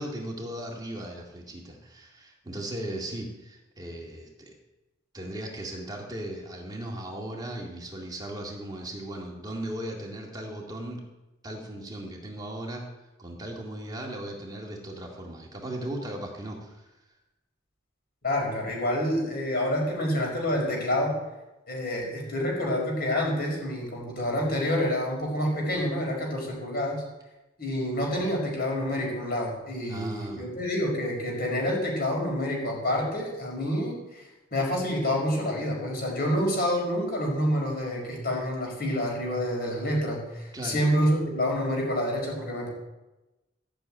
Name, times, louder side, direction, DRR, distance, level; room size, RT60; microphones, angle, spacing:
voice 1, 0.0-4.5 5.1-11.0 11.4-12.9 13.2-16.9 29.9-30.5 40.5-40.8, right 1 dB, 20° right, -1 dB, 2.2 m, -37 dB
voice 2, 18.2-21.2 21.7-27.0 27.6-34.2 34.5-42.7, equal, 55° left, -1 dB, 5.5 m, -28 dB
14.0 x 6.9 x 9.0 m, 1.0 s
head